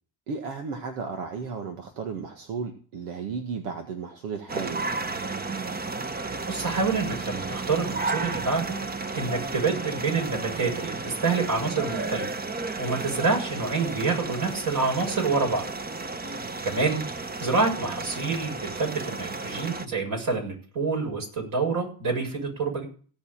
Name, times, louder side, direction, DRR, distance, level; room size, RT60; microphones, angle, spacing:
voice 1, 0.3-5.0, right 5 dB, 90° right, 4 dB, 1.9 m, -34 dB
sound 1, 4.5-19.9, right 3 dB, 20° right, 1.1 m, -33 dB
voice 2, 6.5-8.8 9.1-12.2 12.8-15.7 16.6-22.8, right 4 dB, 50° right, 1 dB, 7.2 m, -27 dB
16.5 x 5.6 x 8.8 m, 0.43 s
supercardioid pair, 85°, 43 cm